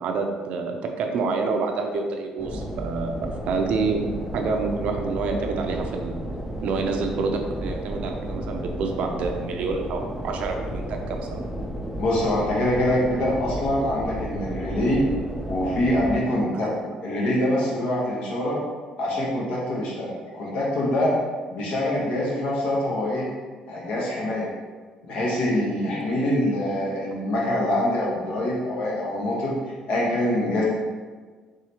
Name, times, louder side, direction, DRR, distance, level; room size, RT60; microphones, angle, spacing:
voice 1, 0.0-4.1 4.3-6.3 6.6-11.4 16.5-16.7, right 4 dB, 65° right, 3 dB, 0.5 m, -28 dB
sound 1, 2.4-16.2, right 1 dB, 5° right, 0.5 m, -33 dB
voice 2, 12.0-15.0 15.5-16.7 17.0-18.6 19.0-21.1 21.5-23.3 23.7-24.5 25.0-29.6 29.9-30.7, left 1 dB, 65° left, -4 dB, 1.0 m, -24 dB
4.9 x 3.2 x 2.9 m, 1.5 s
cardioid pair, 150°, 2 cm